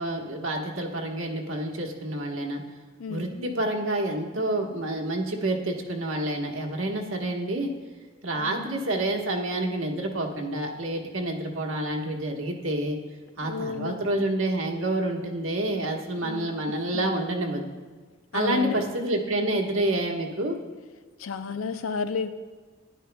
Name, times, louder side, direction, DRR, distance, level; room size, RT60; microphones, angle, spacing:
voice 1, 0.0-2.6 3.1-7.7 8.2-13.0 13.4-17.6 18.3-20.6, right 1 dB, 80° right, 1 dB, 1.2 m, -28 dB
voice 2, 3.0-3.5 8.4-8.8 13.4-14.2 16.2-17.1 18.3-18.9 21.2-22.3, left 5 dB, 80° left, 10 dB, 0.5 m, -33 dB
12.0 x 10.0 x 2.2 m, 1.4 s
head